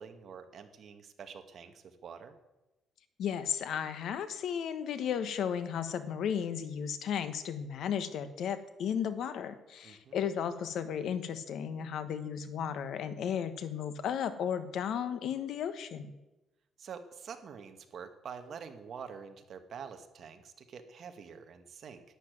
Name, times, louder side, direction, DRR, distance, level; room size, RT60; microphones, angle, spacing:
voice 1, 0.0-2.4 9.8-10.2 16.8-22.0, right 6 dB, 45° right, 7 dB, 1.6 m, -46 dB
voice 2, 3.2-16.1, left 8 dB, 65° left, 11 dB, 1.2 m, -34 dB
11.5 x 10.0 x 9.1 m, 1.0 s
cardioid pair, 150°, 0 cm